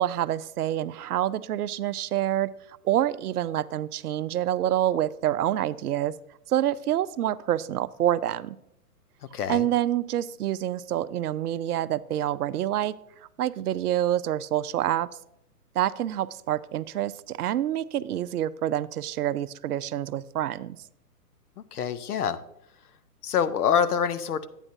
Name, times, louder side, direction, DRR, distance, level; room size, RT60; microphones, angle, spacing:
voice 1, 0.0-6.1 6.5-8.6 9.5-12.9 13.4-15.1 15.7-20.8, right 12 dB, 70° right, 16 dB, 0.5 m, -27 dB
voice 2, 9.3-9.7 21.7-22.4 23.2-24.5, left 8 dB, 70° left, 12 dB, 0.8 m, -25 dB
10.5 x 9.0 x 2.7 m, 0.80 s
hypercardioid pair, 130°, 47 cm